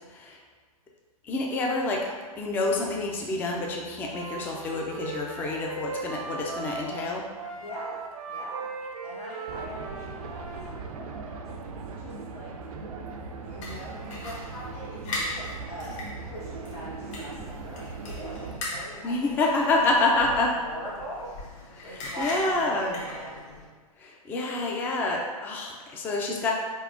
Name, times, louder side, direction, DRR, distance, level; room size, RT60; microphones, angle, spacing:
voice 1, 0.1-0.4 1.2-7.3 19.0-20.5 21.8-23.0 24.0-26.5, left 2 dB, 10° left, -1 dB, 0.3 m, -28 dB
Wind instrument woodwind instrument, 4.0-10.7, right 5 dB, 85° right, 0.8 m, -38 dB
voice 2, 7.6-8.7 9.0-12.7 13.4-19.3 19.6-23.4, equal, 80° left, -7 dB, 1.3 m, -42 dB
sound 1, 9.5-18.6, right 4 dB, 65° right, 0.5 m, -39 dB
sound 2, 13.6-23.7, left 2 dB, 55° left, 1.1 m, -39 dB
4.1 x 3.5 x 2.5 m, 1.5 s
hypercardioid pair, 130°, 19 cm